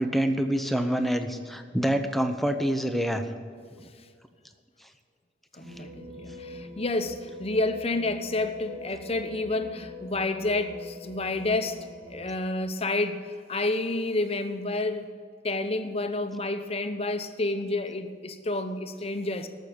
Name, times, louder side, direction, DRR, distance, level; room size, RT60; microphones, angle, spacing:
voice 1, 0.0-3.2, right 1 dB, ahead, 7 dB, 0.8 m, -26 dB
voice 2, 5.5-15.1 15.4-19.5, left 2 dB, 35° left, 8 dB, 0.9 m, -29 dB
sound 1, 5.6-12.3, equal, 75° right, 3.1 m, -44 dB
13.5 x 6.5 x 8.6 m, 2.1 s
head